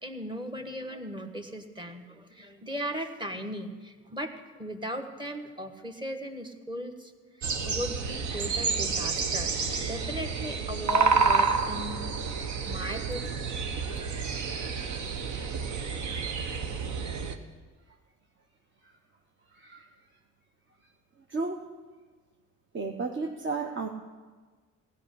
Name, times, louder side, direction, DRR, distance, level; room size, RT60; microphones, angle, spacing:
voice 1, 0.0-4.3 4.6-7.1 7.4-9.5 9.8-12.0 12.7-13.4 13.8-14.0, equal, 15° right, 5 dB, 1.4 m, -37 dB
sound 1, 7.4-17.4, right 5 dB, 70° right, 1.1 m, -29 dB
voice 2, 19.5-19.9 21.3-21.7 22.7-23.9, right 3 dB, 40° right, 2 dB, 1.0 m, -33 dB
15.5 x 5.7 x 9.9 m, 1.4 s
cardioid pair, 90°, 30 cm